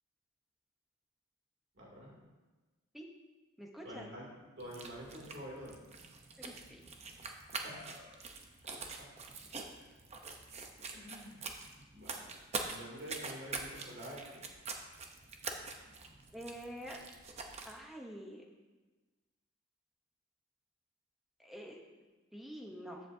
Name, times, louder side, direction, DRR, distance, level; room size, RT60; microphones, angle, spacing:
voice 1, 1.7-2.1 3.8-5.8 7.6-8.3 8.7-9.1 10.9-11.4 11.9-12.2 12.6-14.4, equal, 55° right, -4 dB, 2.7 m, -48 dB
voice 2, 3.6-4.1 6.4-6.8 16.3-17.0 17.6-18.4 21.4-21.8 22.3-23.0, equal, ahead, 0 dB, 0.9 m, -47 dB
sound 1, 4.6-17.8, right 4 dB, 30° right, 0.8 m, -45 dB
14.5 x 8.0 x 2.7 m, 1.2 s
head